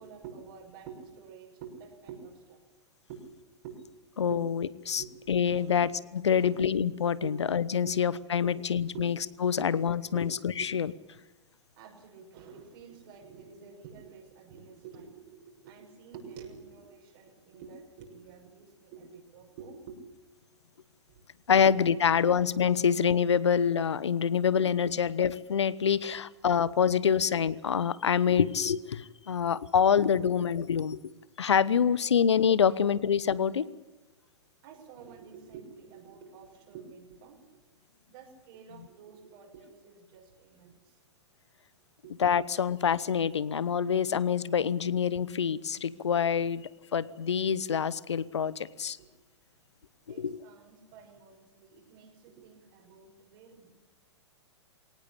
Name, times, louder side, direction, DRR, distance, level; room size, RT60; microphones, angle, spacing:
voice 1, 0.0-2.6 3.1-3.3 3.6-3.8 4.3-4.5 5.0-5.1 5.6-5.8 6.3-6.6 7.2-7.3 7.8-8.0 8.4-8.5 8.9-9.1 9.6-9.7 11.8-20.0 21.1-21.2 21.5-21.6 21.9-22.3 22.8-22.9 26.8-27.0 30.1-30.3 31.8-32.0 32.7-32.8 34.6-37.6 38.1-40.9 42.0-42.1 42.6-42.7 46.4-46.5 49.0-49.1 50.1-53.7, right 7 dB, 45° right, 1 dB, 6.3 m, -48 dB
voice 2, 4.2-5.9 6.2-9.2 9.4-10.3 10.6-10.9 21.5-31.1 31.4-33.7 42.2-49.0 50.2-50.4, left 7 dB, 70° left, 19 dB, 1.0 m, -26 dB
22.5 x 18.5 x 8.5 m, 1.1 s
figure-of-eight pair, 105°, 15 cm